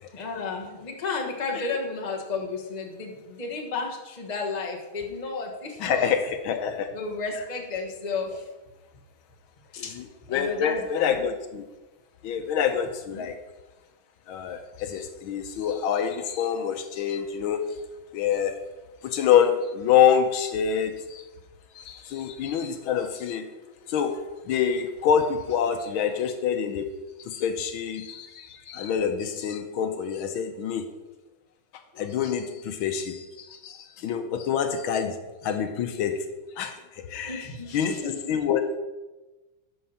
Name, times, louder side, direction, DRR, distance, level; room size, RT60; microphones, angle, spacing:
voice 1, 0.1-6.1 6.9-8.4 9.7-9.9 10.3-11.2 13.1-13.3 37.2-38.2, left 4 dB, 25° left, 0 dB, 1.2 m, -33 dB
voice 2, 5.8-6.2 6.4-6.9 10.0-10.1 10.3-11.6 12.2-13.3 14.3-17.7 18.1-18.5 19.0-21.2 21.8-23.4 23.9-26.9 27.2-30.8 32.0-35.2 35.4-36.3 36.6-36.8 37.1-37.5 37.7-37.9 38.3-38.7, left 8 dB, 80° left, 7 dB, 1.5 m, -26 dB
12.0 x 4.8 x 5.6 m, 1.1 s
omnidirectional pair, 2.3 m